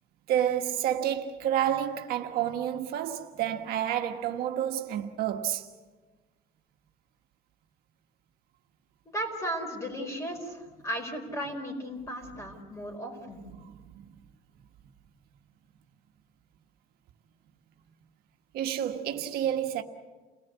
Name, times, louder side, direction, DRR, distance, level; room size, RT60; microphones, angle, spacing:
voice 1, 0.3-5.7 13.5-14.1 18.5-19.8, right 10 dB, 65° right, 1.4 m, -29 dB
voice 2, 9.1-13.4, equal, 15° left, 4.6 m, -35 dB
29.5 x 18.5 x 8.2 m
cardioid pair, 155°, 17 cm